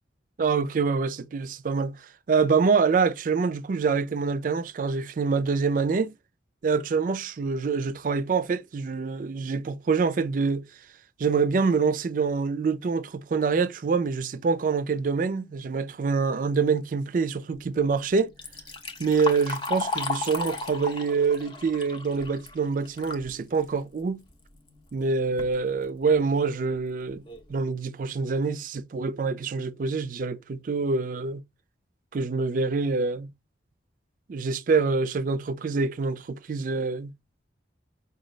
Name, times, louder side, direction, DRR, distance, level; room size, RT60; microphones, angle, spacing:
voice 1, 0.4-2.0 2.3-6.1 6.6-10.7 11.2-18.3 19.0-24.2 24.9-27.2 27.5-31.4 32.1-33.3 34.3-37.1, right 4 dB, 45° right, 0.4 m, -26 dB
Liquid, 18.2-23.3 23.7-23.8 24.7-24.8 25.2-25.5 26.1-26.2 26.7-26.8 27.3-27.5, left 3 dB, 25° left, 0.7 m, -34 dB
5.0 x 2.3 x 3.1 m
head